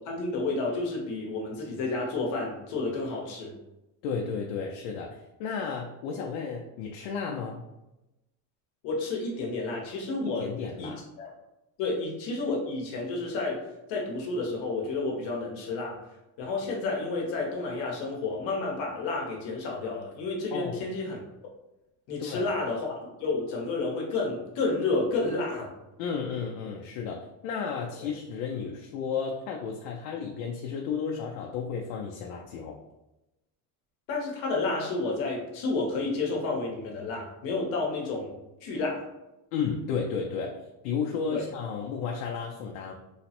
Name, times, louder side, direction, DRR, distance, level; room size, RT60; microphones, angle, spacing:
voice 1, 0.1-3.5 8.8-10.5 10.8-10.9 11.2-11.3 11.8-13.6 13.9-16.0 16.4-21.2 22.1-22.9 23.2-25.7 34.1-38.4 38.6-39.0 41.3-41.4, left 3 dB, 60° left, -1 dB, 0.9 m, -30 dB
voice 2, 4.0-7.7 10.2-11.0 20.5-20.8 22.2-22.5 26.0-32.8 39.5-40.6 40.8-42.9, left 6 dB, 85° left, 0 dB, 0.6 m, -33 dB
3.1 x 2.0 x 2.8 m, 0.95 s
cardioid pair, 130°, 49 cm